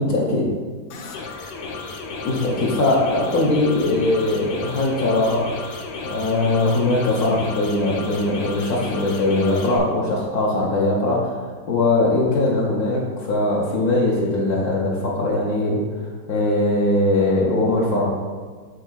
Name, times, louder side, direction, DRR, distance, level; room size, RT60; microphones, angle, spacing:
voice 1, 0.1-0.4 2.2-5.5 6.0-11.4 11.7-15.8 16.3-18.1, left 2 dB, 65° left, -3 dB, 1.5 m, -20 dB
sound 1, 0.9-9.8, left 3 dB, 85° left, 1.4 m, -33 dB
5.8 x 3.7 x 5.7 m, 1.5 s
omnidirectional pair, 1.8 m